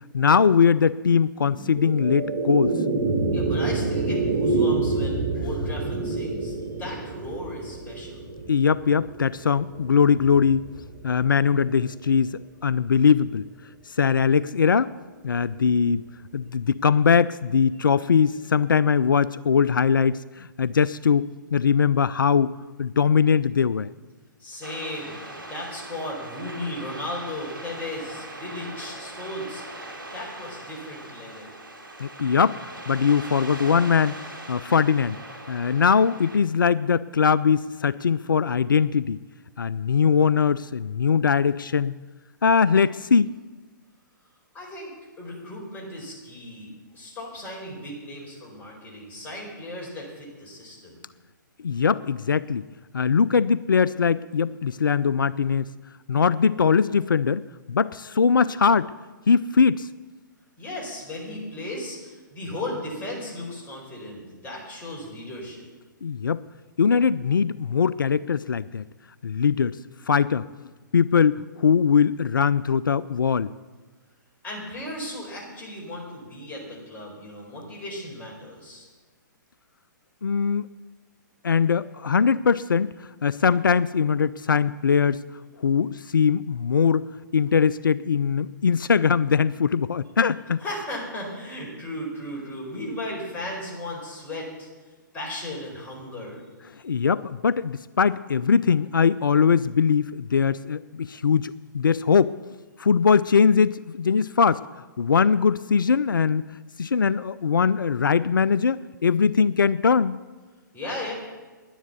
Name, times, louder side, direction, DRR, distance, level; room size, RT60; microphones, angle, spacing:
voice 1, 0.1-2.7 5.3-5.4 8.5-10.7 11.0-13.5 13.9-14.9 15.2-16.0 16.3-23.9 32.0-34.1 34.5-35.2 35.5-39.2 39.6-41.9 42.4-43.3 51.6-52.6 52.9-55.7 56.1-57.4 57.7-58.9 59.3-59.9 66.0-66.4 66.8-68.8 69.2-69.8 70.1-70.5 70.9-73.5 80.2-80.7 81.4-85.2 85.6-87.1 87.3-90.6 96.8-102.3 102.8-104.6 105.0-110.2, left 6 dB, 85° left, 18 dB, 0.4 m, -21 dB
sound 1, 1.4-11.9, right 3 dB, 60° right, 2.3 m, -28 dB
voice 2, 3.3-8.2 24.4-25.2 25.5-29.6 30.1-31.6 44.5-51.0 60.6-65.7 74.4-78.9 90.6-94.7 95.1-96.5 110.7-111.1, left 1 dB, 15° left, -3 dB, 4.7 m, -36 dB
sound 2, 24.6-36.4, right 1 dB, 90° right, 2.6 m, -40 dB
10.5 x 10.0 x 8.2 m, 1.3 s
figure-of-eight pair, 125°, 11 cm